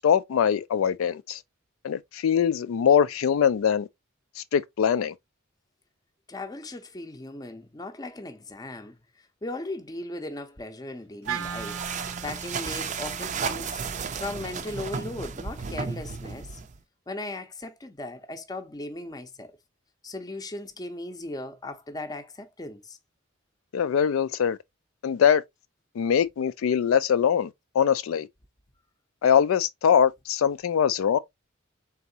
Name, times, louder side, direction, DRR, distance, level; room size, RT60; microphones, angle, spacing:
voice 1, 0.0-1.4 1.8-3.9 4.4-5.1 23.7-24.6 25.0-25.4 26.0-27.5 27.8-28.3 29.2-31.2, left 8 dB, 75° left, 0.3 m, -22 dB
voice 2, 6.3-13.8 14.2-16.6 17.1-19.6 20.0-23.0, left 2 dB, 20° left, 0.6 m, -37 dB
sound 1, 11.2-16.8, right 5 dB, 35° right, 0.4 m, -34 dB
Wind instrument woodwind instrument, 11.2-15.5, right 7 dB, 90° right, 0.6 m, -39 dB
4.0 x 3.5 x 2.7 m
head